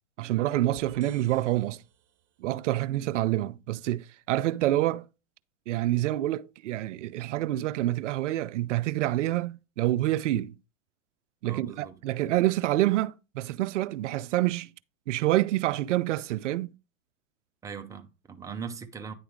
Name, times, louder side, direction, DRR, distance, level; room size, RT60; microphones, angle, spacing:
voice 1, 0.2-1.8 2.4-5.0 5.7-10.5 11.4-14.7 15.1-16.7, right 15 dB, 60° right, 0.5 m, -27 dB
sound 1, 0.7-2.4, right 11 dB, 35° right, 1.4 m, -54 dB
voice 2, 11.4-12.0 17.6-19.1, right 6 dB, 10° right, 0.5 m, -40 dB
9.6 x 3.4 x 4.8 m
hypercardioid pair, 120°, 40 cm